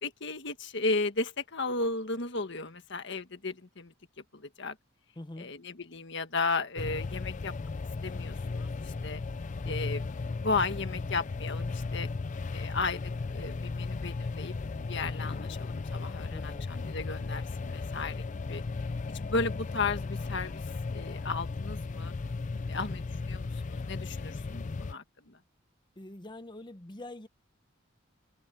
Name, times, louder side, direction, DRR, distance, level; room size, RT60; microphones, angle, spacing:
voice 1, 0.0-3.9 4.3-4.8 5.4-7.5 8.0-9.2 9.7-10.0 10.4-12.1 12.5-18.6 19.1-22.1 22.7-23.0 23.3-25.4, left 3 dB, 60° left, 1.6 m, -35 dB
voice 2, 5.2-5.5 9.6-10.0 16.3-16.7 22.7-23.0 26.0-27.3, left 1 dB, 25° left, 1.0 m, -45 dB
sound 1, 6.8-24.9, left 3 dB, 40° left, 0.4 m, -36 dB
head